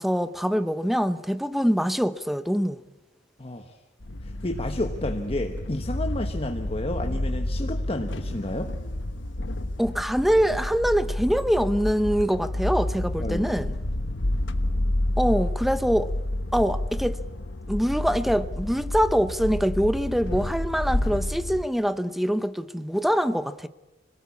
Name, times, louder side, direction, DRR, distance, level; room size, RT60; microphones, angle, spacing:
voice 1, 0.0-2.8 9.8-13.7 15.2-16.1 16.5-17.2 17.7-23.7, equal, ahead, 0.7 m, -24 dB
voice 2, 3.4-3.8 4.2-8.7 13.2-13.5, left 1 dB, 30° left, 1.2 m, -31 dB
sound 1, 4.0-21.6, left 1 dB, 65° left, 1.2 m, -29 dB
25.5 x 18.0 x 8.5 m
head